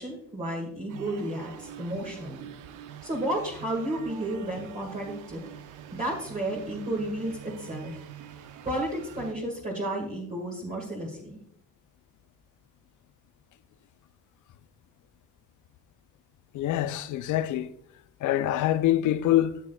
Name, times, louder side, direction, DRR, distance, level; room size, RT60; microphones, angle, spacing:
voice 1, 0.0-2.5 3.0-5.4 5.9-7.9 8.6-11.4, right 1 dB, 25° right, 1.9 m, -32 dB
sound 1, 0.9-9.3, right 9 dB, 85° right, 0.7 m, -44 dB
voice 2, 16.5-17.7 18.2-19.7, left 13 dB, 75° left, 0.5 m, -25 dB
13.0 x 6.3 x 2.3 m
cardioid pair, 90°, 30 cm